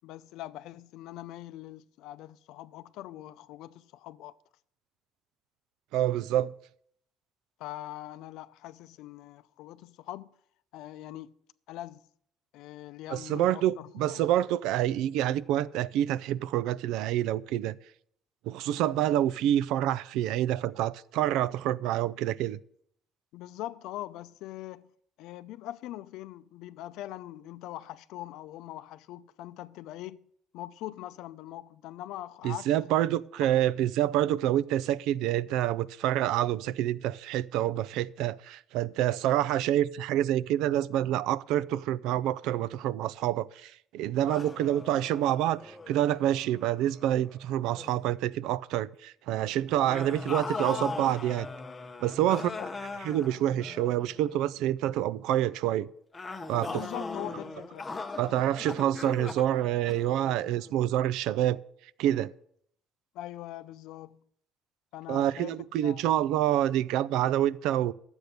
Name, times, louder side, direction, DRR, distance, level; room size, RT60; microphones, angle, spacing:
voice 1, 0.0-4.3 7.6-10.3 10.7-11.4 11.7-12.0 12.5-14.2 23.3-24.9 25.2-30.3 30.5-32.7 49.7-50.0 52.3-52.7 56.7-58.0 63.1-64.2 64.9-66.0, left 14 dB, 80° left, 0.5 m, -42 dB
voice 2, 5.9-6.5 13.1-17.8 18.5-22.6 32.4-51.5 52.0-52.5 53.0-55.9 56.5-56.7 58.2-61.6 62.0-62.3 65.1-67.9, right 12 dB, 85° right, 0.4 m, -27 dB
sound 1, 44.3-47.4 47.7-48.1 49.9-54.5 56.1-60.7, left 3 dB, 20° left, 0.7 m, -39 dB
12.0 x 8.0 x 6.7 m
cardioid pair, 145°, 0 cm